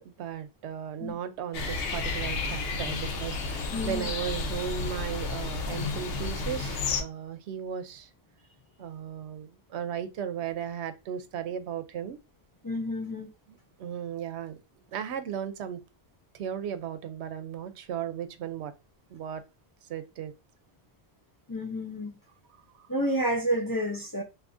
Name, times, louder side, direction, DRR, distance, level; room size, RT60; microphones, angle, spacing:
voice 1, 0.0-8.1 8.8-12.2 13.8-14.6 14.9-15.8 16.3-18.8 19.1-19.4 19.9-20.3 22.7-22.9, right 8 dB, 90° right, 0.9 m, -36 dB
sound 1, 1.5-7.0, left 4 dB, 70° left, 0.8 m, -32 dB
voice 2, 3.7-4.1 12.6-13.3 21.5-22.2 22.9-24.2, equal, 25° left, 0.5 m, -30 dB
3.5 x 2.6 x 2.5 m
omnidirectional pair, 1.1 m